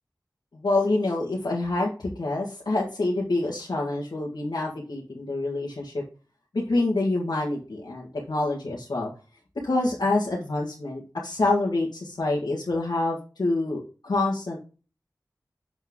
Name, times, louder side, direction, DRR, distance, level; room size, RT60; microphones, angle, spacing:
voice 1, 0.5-6.0 6.5-9.1 9.6-14.6, left 2 dB, 85° left, -4 dB, 1.9 m, -26 dB
7.1 x 6.1 x 3.7 m, 0.35 s
wide cardioid pair, 55°, 7 cm